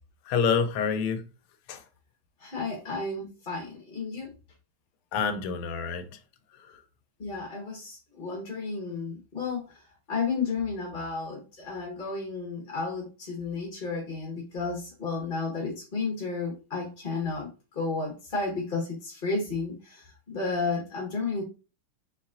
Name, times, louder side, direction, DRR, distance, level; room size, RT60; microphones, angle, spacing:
voice 1, 0.3-1.3 1.7-1.8 5.1-6.2, left 6 dB, 80° left, 1.5 m, -27 dB
voice 2, 2.4-4.3 7.2-9.8 10.1-21.4, left 4 dB, 30° left, 1.1 m, -32 dB
4.3 x 4.1 x 2.4 m
omnidirectional pair, 2.4 m